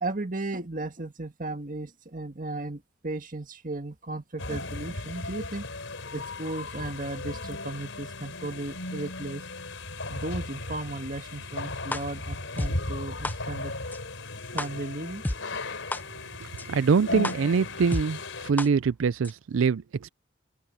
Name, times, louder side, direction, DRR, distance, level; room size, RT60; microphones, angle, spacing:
voice 1, 0.0-5.7 6.1-9.4 10.1-13.7 14.5-15.2, right 2 dB, 45° right, 1.9 m, -35 dB
sound 1, 4.4-18.5, left 2 dB, 75° left, 4.5 m, -36 dB
sound 2, 11.9-12.0 12.6-12.7 13.2-13.3 13.9-14.0 14.6-14.7 15.2-15.4 15.9-16.0 16.6-16.7 17.2-17.3 17.9-18.0 18.6-18.7 19.2-19.3, left 1 dB, 10° left, 0.4 m, -29 dB
voice 2, 16.7-20.1, right 5 dB, 90° right, 0.4 m, -24 dB
open air
head